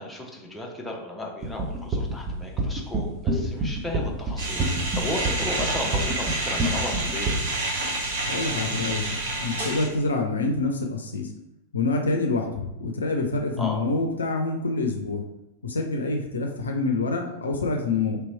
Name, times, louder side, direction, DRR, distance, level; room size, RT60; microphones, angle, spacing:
voice 1, 0.0-4.7 4.9-7.3 13.6-13.8, left 1 dB, 5° left, -2 dB, 0.8 m, -34 dB
sound 1, 1.4-7.5, right 2 dB, 30° right, 0.7 m, -27 dB
sound 2, 4.4-9.9, right 2 dB, 60° right, 1.0 m, -29 dB
voice 2, 8.2-9.1 9.4-11.3 11.7-15.2 15.6-18.2, left 3 dB, 70° left, 3 dB, 0.5 m, -26 dB
3.3 x 3.0 x 4.2 m, 0.89 s
figure-of-eight pair, 90°, 0 cm